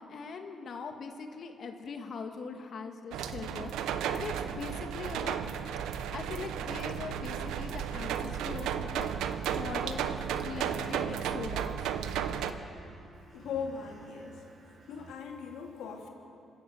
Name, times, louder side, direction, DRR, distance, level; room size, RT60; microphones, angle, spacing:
voice 1, 0.0-5.4 6.1-11.8, left 5 dB, 55° left, 4 dB, 1.8 m, -41 dB
sound 1, 3.1-12.5, right 8 dB, 90° right, 1.0 m, -34 dB
sound 2, 5.7-15.2, right 3 dB, 40° right, 1.8 m, -53 dB
voice 2, 13.3-14.4 14.9-16.1, left 6 dB, 80° left, 1 dB, 3.2 m, -39 dB
26.5 x 13.5 x 7.9 m, 2.6 s
cardioid pair, 90°, 0 cm